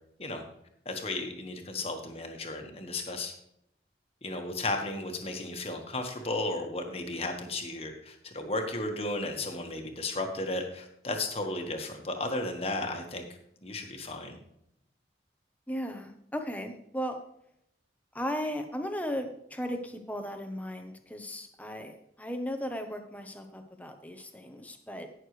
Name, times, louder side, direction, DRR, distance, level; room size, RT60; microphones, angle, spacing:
voice 1, 0.8-3.3 4.2-13.2 13.6-14.4, left 2 dB, 35° left, 4 dB, 1.5 m, -34 dB
voice 2, 15.7-17.2 18.1-25.1, equal, 10° left, 6 dB, 1.0 m, -36 dB
17.0 x 6.6 x 3.3 m, 0.77 s
head